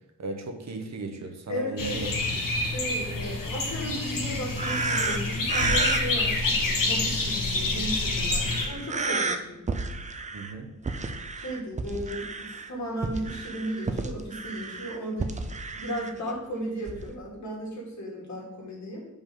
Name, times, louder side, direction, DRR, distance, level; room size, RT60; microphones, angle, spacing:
voice 1, 0.2-2.1 10.3-10.7, right 3 dB, 55° right, 5 dB, 0.9 m, -35 dB
voice 2, 1.5-2.1 2.6-9.6 11.4-19.1, equal, 60° left, -4 dB, 2.5 m, -35 dB
sound 1, 1.8-8.7, left 2 dB, 85° left, 1.4 m, -27 dB
sound 2, 4.6-6.4 7.9-8.1 8.5-9.4 9.7-10.5 10.9-12.7 13.0-16.1 16.9-17.1, right 3 dB, 25° right, 0.4 m, -31 dB
6.9 x 5.3 x 3.8 m, 0.97 s
wide cardioid pair, 155°, 32 cm